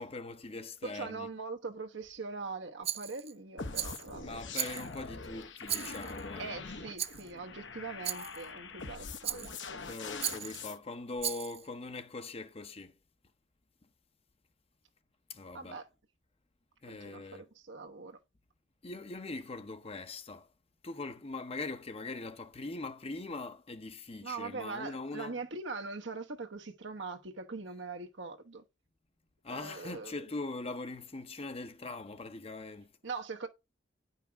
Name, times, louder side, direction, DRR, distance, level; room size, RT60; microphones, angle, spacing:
voice 1, 0.0-1.3 4.2-6.5 9.9-12.9 15.3-15.8 16.8-17.5 18.8-20.5 20.8-25.4 29.4-32.9, left 3 dB, 35° left, 0.8 m, -41 dB
voice 2, 0.8-4.4 6.4-9.8 10.6-10.7 15.5-15.9 16.9-18.2 24.2-28.6 29.5-30.3 33.0-33.5, right 4 dB, 80° right, 1.2 m, -42 dB
Rattle, 2.8-3.3 3.7-4.1 4.5-5.1 5.7-6.2 7.0-7.3 8.0-8.4 9.2-9.7 10.2-10.6 11.2-11.7, right 10 dB, 35° right, 0.5 m, -37 dB
sound 1, 3.6-10.8, left 4 dB, 75° left, 1.1 m, -43 dB
9.8 x 5.7 x 3.4 m
head